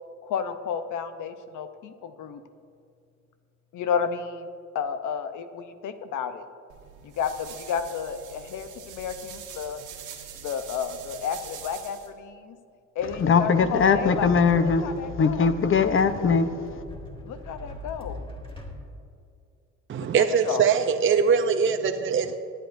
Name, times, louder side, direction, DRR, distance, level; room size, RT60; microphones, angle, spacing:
voice 1, 0.2-2.4 3.7-4.5 4.7-6.5 7.0-9.8 10.4-12.6 13.0-14.3 14.6-15.6 17.2-18.2 19.9-20.7, left 7 dB, 80° left, 0.8 m, -32 dB
sound 1, 6.7-12.1, right 8 dB, 90° right, 1.4 m, -43 dB
sound 2, 13.0-18.8, left 1 dB, 15° left, 1.7 m, -40 dB
voice 2, 13.2-14.8 15.2-16.8, left 5 dB, 45° left, 0.8 m, -21 dB
voice 3, 19.9-22.4, right 6 dB, 40° right, 0.6 m, -22 dB
18.5 x 9.1 x 2.6 m
cardioid pair, 90°, 30 cm